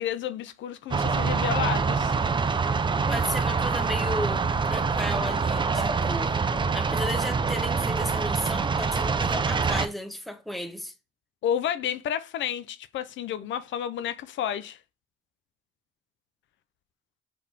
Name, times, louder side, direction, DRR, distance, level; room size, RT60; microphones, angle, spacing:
voice 1, 0.0-2.1 11.4-14.8, left 9 dB, 70° left, 0.5 m, -31 dB
sound 1, 0.9-9.9, right 5 dB, 25° right, 0.5 m, -25 dB
voice 2, 3.1-6.4 6.7-10.9, left 1 dB, ahead, 0.9 m, -34 dB
4.6 x 3.4 x 3.3 m
cardioid pair, 90°, 20 cm